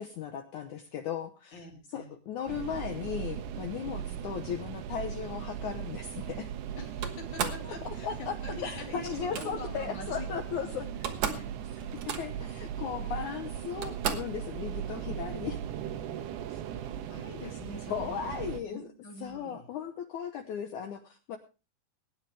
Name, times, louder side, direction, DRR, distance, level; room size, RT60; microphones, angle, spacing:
voice 1, 0.0-1.6 1.9-6.5 7.9-8.4 8.6-10.9 11.9-15.6 16.5-16.6 17.9-18.9 19.2-21.4, left 8 dB, 70° left, 6 dB, 1.9 m, -37 dB
voice 2, 1.5-2.1 3.9-4.2 6.8-10.3 10.6-10.7 11.0-12.0 16.9-19.7, left 3 dB, 30° left, 1 dB, 3.1 m, -45 dB
sound 1, 2.5-18.6, right 9 dB, 90° right, 3.0 m, -38 dB
Slam, 7.0-7.7 9.1-9.5 10.6-10.7 10.9-11.5 11.8-12.5 13.3-13.4 13.8-14.4, right 7 dB, 60° right, 1.9 m, -34 dB
20.5 x 9.9 x 3.3 m, 0.32 s
omnidirectional pair, 4.5 m